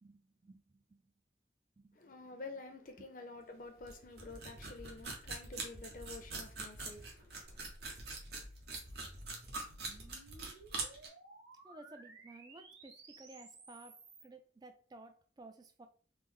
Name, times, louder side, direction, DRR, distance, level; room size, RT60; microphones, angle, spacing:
voice 1, 0.0-1.1 1.8-2.4 11.6-15.9, right 2 dB, 20° right, 0.3 m, -56 dB
voice 2, 1.9-7.7, left 3 dB, 50° left, 0.6 m, -50 dB
sound 1, 3.4-3.5 3.8-11.1, right 3 dB, 60° right, 0.7 m, -44 dB
sound 2, 7.4-14.3, right 2 dB, 80° right, 1.0 m, -57 dB
3.2 x 2.0 x 3.5 m
head